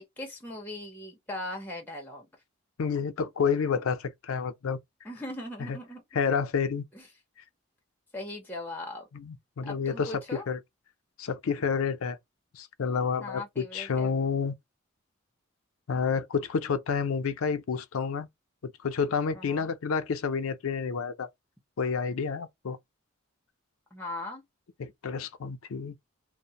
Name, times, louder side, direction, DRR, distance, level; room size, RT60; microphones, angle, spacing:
voice 1, 0.0-2.3 5.0-6.0 6.9-7.1 8.1-9.1 9.6-10.5 13.2-14.1 19.3-19.7 23.9-24.4, left 1 dB, 10° left, 0.8 m, -39 dB
voice 2, 2.8-4.8 5.6-5.8 6.1-6.8 9.1-10.6 11.2-12.2 12.5-14.6 15.9-18.3 18.6-21.3 21.8-22.8 24.8-26.0, left 5 dB, 80° left, 0.5 m, -29 dB
2.5 x 2.0 x 2.7 m
head